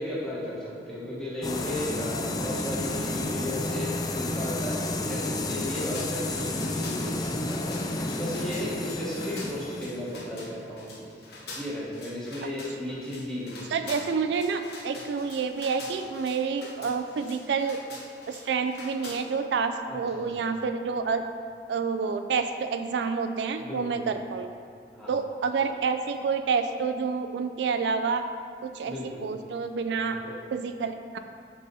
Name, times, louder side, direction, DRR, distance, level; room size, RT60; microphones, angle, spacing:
voice 1, 0.0-11.1 11.6-14.1 19.9-20.5 23.6-24.1 24.9-25.2 28.9-29.3 29.9-30.4, left 1 dB, 5° left, -8 dB, 1.2 m, -35 dB
sound 1, 1.4-11.0, left 2 dB, 20° left, 0.3 m, -31 dB
sound 2, 5.7-19.1, left 2 dB, 65° left, 1.0 m, -45 dB
voice 2, 13.7-17.8 18.3-21.2 21.7-24.5 25.1-28.2 28.6-28.9 29.2-30.2 30.5-31.2, right 5 dB, 80° right, 8 dB, 0.3 m, -28 dB
7.3 x 4.0 x 4.1 m, 2.2 s
head